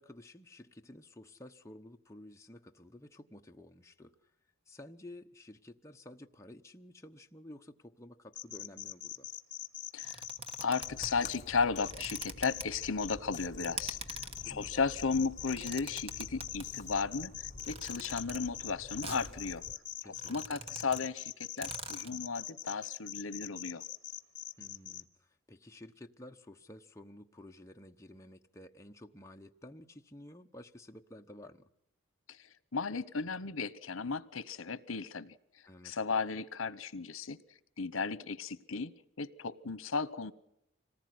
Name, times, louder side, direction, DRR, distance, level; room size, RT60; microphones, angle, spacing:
voice 1, 0.0-4.1 4.7-9.3 14.3-14.7 20.0-20.6 24.6-31.7 35.7-35.9, left 1 dB, 15° left, 3 dB, 1.0 m, -52 dB
sound 1, 8.3-11.4 11.8-25.0, left 12 dB, 55° left, 1.6 m, -42 dB
sound 2, 10.0-11.2 11.8-12.6 13.6-14.4 15.3-16.7 17.6-18.4 19.0-19.3 19.7-19.8 20.0-21.0 21.3-21.4 21.6-22.1, right 3 dB, 25° right, 1.5 m, -44 dB
voice 2, 10.6-14.2 14.4-19.6 20.0-23.8 32.3-35.4 35.8-37.4 37.8-40.3, left 4 dB, 80° left, 17 dB, 1.0 m, -35 dB
Splash splatter, 10.8-19.7, left 3 dB, 35° left, 1.1 m, -50 dB
26.0 x 19.0 x 9.5 m, 0.81 s
head